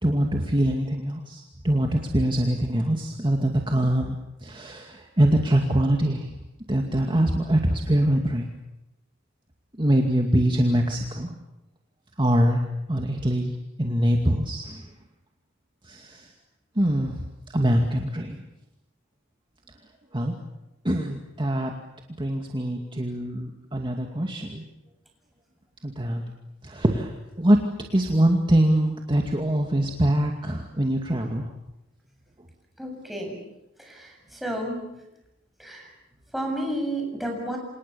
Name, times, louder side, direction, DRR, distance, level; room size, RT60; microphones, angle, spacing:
voice 1, 0.0-6.3 6.7-8.5 9.8-11.4 12.2-12.6 12.9-13.5 13.8-14.8 15.9-16.3 16.8-17.2 17.5-18.4 20.1-20.4 20.8-21.7 22.2-24.6 25.8-26.2 26.6-27.6 27.9-31.4, right 1 dB, 25° right, 2 dB, 2.3 m, -23 dB
voice 2, 32.8-33.4 33.8-34.1 34.4-34.8 35.6-35.9 36.3-37.6, right 1 dB, ahead, 1 dB, 7.7 m, -31 dB
28.5 x 27.5 x 7.1 m, 0.92 s
head